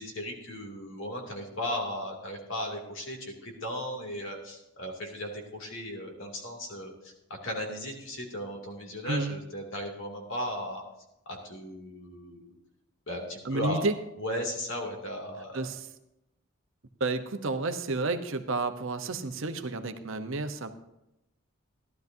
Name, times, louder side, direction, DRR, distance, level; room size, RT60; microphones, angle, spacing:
voice 1, 0.0-10.8 11.3-12.6 13.1-13.9 14.2-15.7, equal, 60° left, 1 dB, 2.6 m, -36 dB
voice 2, 9.1-9.4 13.4-13.9 15.5-15.9 17.0-20.7, right 3 dB, 65° right, 8 dB, 0.9 m, -31 dB
16.0 x 12.0 x 2.7 m, 0.87 s
head